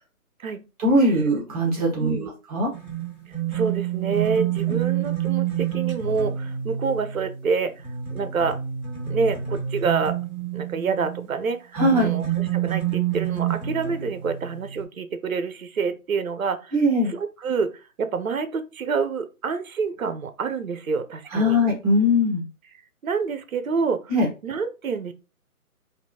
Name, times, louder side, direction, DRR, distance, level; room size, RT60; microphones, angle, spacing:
voice 1, 0.8-2.7 4.7-4.8 11.7-12.1 16.7-17.1 21.3-22.5 24.1-24.3, left 1 dB, 25° right, 1.4 m, -21 dB
voice 2, 2.0-2.3 3.3-8.6 9.1-10.2 10.5-16.8 17.1-21.6 23.0-24.1 24.4-25.1, right 5 dB, 65° right, 0.9 m, -27 dB
sound 1, 2.7-11.3 11.7-14.8, right 10 dB, 5° left, 1.5 m, -28 dB
4.2 x 2.7 x 3.0 m
figure-of-eight pair, 150°, 45 cm